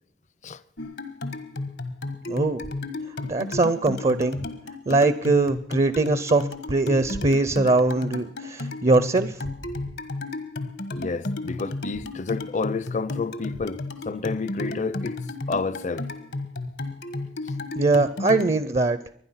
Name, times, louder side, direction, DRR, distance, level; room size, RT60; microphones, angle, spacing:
sound 1, 0.8-18.6, left 2 dB, 80° left, 1.4 m, -33 dB
voice 1, 2.3-2.6 3.3-4.5 4.9-9.4 17.8-19.0, right 3 dB, 35° right, 0.6 m, -22 dB
voice 2, 10.9-15.2 15.5-16.1, left 4 dB, 40° left, 0.6 m, -30 dB
24.0 x 10.0 x 5.7 m
head